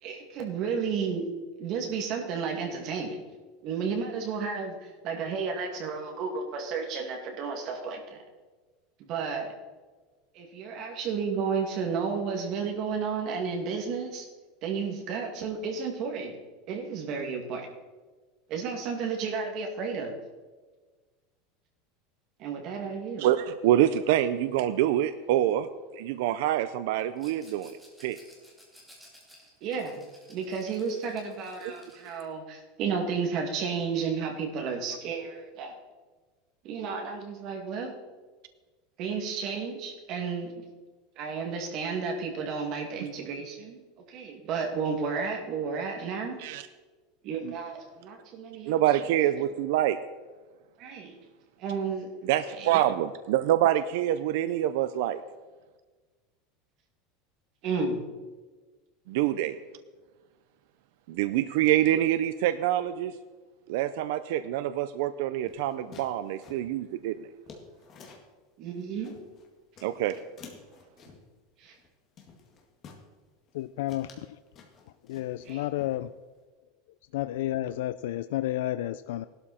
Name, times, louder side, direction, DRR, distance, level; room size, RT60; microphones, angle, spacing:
voice 1, 0.0-1.3 1.6-3.2 3.6-8.2 9.1-9.5 10.3-14.3 14.6-16.4 16.7-17.7 18.5-20.1 22.4-23.3 29.6-35.7 36.6-37.9 39.0-40.6 41.2-43.8 44.1-46.4 47.2-48.8 50.8-51.2 51.6-52.1 52.6-52.7 57.6-58.0 68.6-69.1 71.6-71.8 75.4-75.6, right 5 dB, 40° right, 2 dB, 2.4 m, -32 dB
voice 2, 23.2-27.7 28.0-28.2 31.6-31.7 46.4-46.6 47.4-47.6 48.6-50.0 52.2-55.2 59.1-59.6 61.1-63.1 63.7-67.3 69.8-70.2, right 12 dB, 65° right, 11 dB, 0.5 m, -26 dB
Rattle, 27.2-32.3, equal, ahead, 2.7 m, -56 dB
sound 1, 65.4-68.3 68.7-69.5 69.7-71.3 71.8-71.9 72.2-73.1 73.5-73.6 73.9-75.5 75.8-76.4, left 5 dB, 30° left, 1.9 m, -51 dB
voice 3, 73.5-74.4 75.1-76.1 77.1-79.3, left 14 dB, 80° left, 13 dB, 0.4 m, -31 dB
16.5 x 12.0 x 4.3 m, 1.3 s
supercardioid pair, 170°, 0 cm